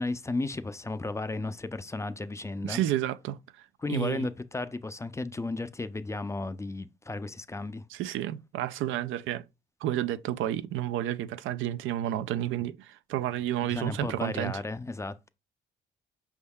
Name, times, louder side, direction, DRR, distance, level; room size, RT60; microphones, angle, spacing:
voice 1, 0.0-2.8 3.8-7.8 13.7-15.3, left 2 dB, 15° left, 0.4 m, -34 dB
voice 2, 2.6-4.3 7.9-9.4 9.8-14.6, right 12 dB, 85° right, 0.4 m, -31 dB
5.3 x 3.5 x 2.3 m
cardioid pair, 90°, 20 cm